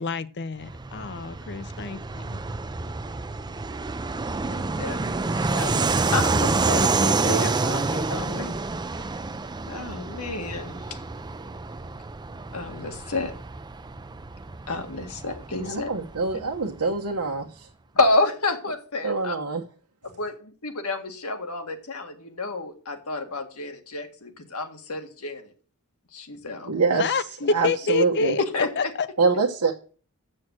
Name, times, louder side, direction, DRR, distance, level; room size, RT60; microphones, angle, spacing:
voice 1, 0.0-2.0 26.9-28.4 28.8-29.1, left 4 dB, 50° left, 0.7 m, -27 dB
Fixed-wing aircraft airplane, 0.6-16.8, right 3 dB, 20° right, 0.5 m, -28 dB
voice 2, 4.4-8.5 9.7-11.0 12.5-13.3 14.7-15.9 17.9-19.4 20.0-25.4 26.1-26.7 27.4-27.5 28.5-28.9, left 2 dB, 75° left, 1.9 m, -30 dB
voice 3, 15.6-17.7 19.0-19.6 26.7-27.2 27.5-28.3 29.2-29.7, right 4 dB, 85° right, 1.1 m, -25 dB
7.6 x 6.5 x 7.5 m
head